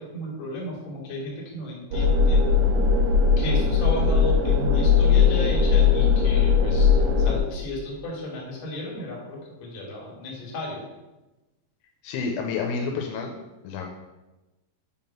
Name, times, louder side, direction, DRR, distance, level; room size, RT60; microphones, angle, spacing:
voice 1, 0.0-2.4 3.4-10.8, left 1 dB, 45° left, -4 dB, 2.6 m, -34 dB
sound 1, 1.9-7.4, left 5 dB, 75° right, 2.6 m, -19 dB
voice 2, 12.0-13.3 13.6-13.9, left 5 dB, 80° left, 2 dB, 2.9 m, -29 dB
7.8 x 3.7 x 5.8 m, 1.1 s
omnidirectional pair, 5.4 m